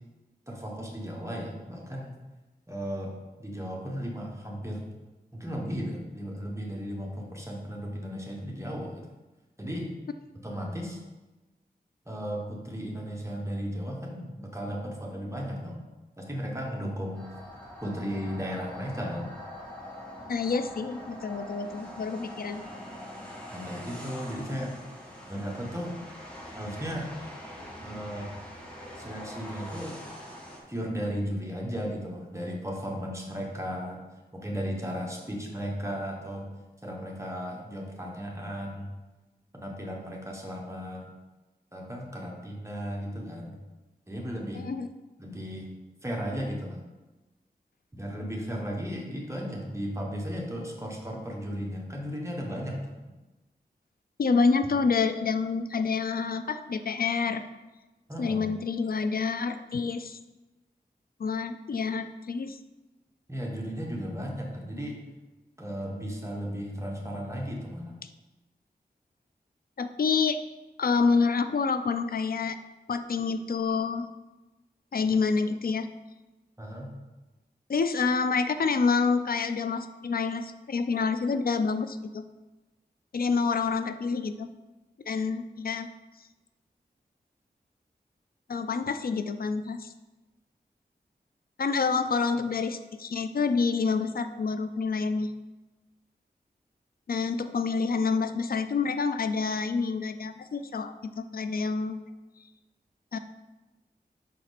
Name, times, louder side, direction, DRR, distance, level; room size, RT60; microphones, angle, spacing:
voice 1, 0.5-2.1 2.7-3.1 3.4-4.9 5.3-9.0 9.6-9.9 10.4-11.0 12.1-15.8 16.2-17.3 17.8-19.3 23.5-24.8 25.3-25.9 26.5-27.1 27.8-28.3 29.0-30.0 30.7-34.0 34.3-36.4 36.8-38.9 39.5-41.1 41.7-43.6 44.1-44.7 45.2-45.7 46.0-46.8 47.9-52.9 58.1-58.5 63.3-65.0 65.6-68.0 76.6-76.9, equal, 15° right, -1 dB, 1.2 m, -35 dB
sound 1, 17.1-30.6, equal, 5° left, 1.5 m, -43 dB
voice 2, 20.3-22.6 44.5-44.9 54.2-57.4 58.2-60.2 61.2-62.6 69.8-70.4 70.8-72.6 72.9-74.1 74.9-75.9 77.7-82.2 83.1-84.5 85.1-85.9 88.5-89.9 91.6-95.3 97.1-102.0 103.1-103.2, left 5 dB, 65° left, 10 dB, 0.4 m, -27 dB
6.0 x 4.4 x 4.1 m, 1.1 s
wide cardioid pair, 80°, 16 cm